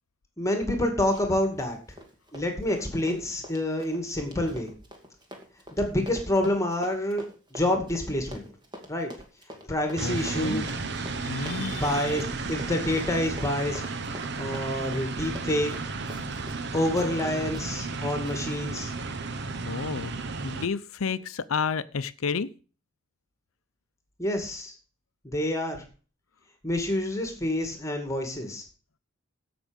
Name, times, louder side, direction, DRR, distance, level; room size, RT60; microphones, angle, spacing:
voice 1, 0.4-1.8 2.3-4.7 5.7-7.2 7.5-8.4 8.9-9.1 9.7-10.6 11.7-12.2 12.5-13.8 14.4-15.9 16.7-18.9 24.2-24.7 25.2-25.8 26.6-28.6, left 1 dB, 15° left, 5 dB, 2.2 m, -27 dB
Run, 1.1-1.3 1.6-16.7 17.0-17.1 17.5-17.7 18.3-18.4, equal, 20° right, 2.4 m, -45 dB
voice 2, 10.0-10.7 11.1-12.2 16.3-16.7 19.6-20.1 20.4-22.5, left 5 dB, 85° left, 13 dB, 0.7 m, -31 dB
sound 1, 10.0-20.7, right 4 dB, 55° right, 1.0 m, -33 dB
15.5 x 6.0 x 5.2 m, 0.36 s
head